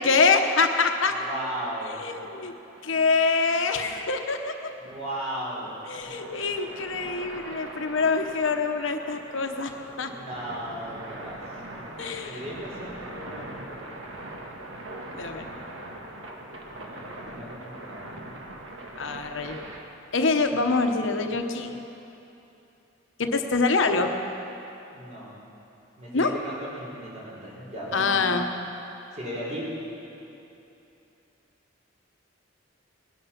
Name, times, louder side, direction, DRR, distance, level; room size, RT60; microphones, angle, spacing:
voice 1, 0.0-1.1 2.0-2.5 2.8-4.7 5.9-10.1 12.0-12.4 15.1-15.4 19.0-19.6 20.1-21.8 23.2-24.1 26.1-26.3 27.9-28.5, left 4 dB, 75° left, 5 dB, 1.0 m, -25 dB
voice 2, 1.1-2.0 4.8-5.7 6.0-7.0 9.9-14.0 16.8-18.4 24.9-25.3 26.0-28.2 29.1-29.7, right 1 dB, 40° right, -5 dB, 4.4 m, -37 dB
sound 1, 1.5-19.8, right 1 dB, 80° right, 1.7 m, -42 dB
19.5 x 11.0 x 5.9 m, 2.9 s
head